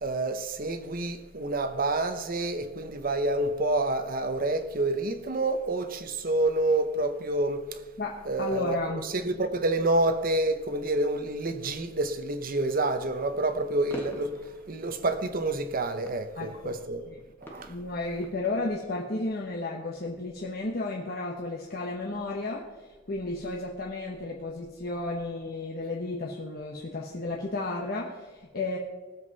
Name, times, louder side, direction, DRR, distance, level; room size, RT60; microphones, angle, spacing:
voice 1, 0.0-7.8 8.3-17.0 17.4-17.7, right 2 dB, 45° right, 1.0 m, -28 dB
voice 2, 8.0-9.1 16.4-16.7 17.1-17.2 17.7-28.8, left 2 dB, 50° left, 1.2 m, -33 dB
sound 1, 13.1-18.9, equal, 10° left, 1.5 m, -48 dB
19.0 x 7.4 x 4.1 m
head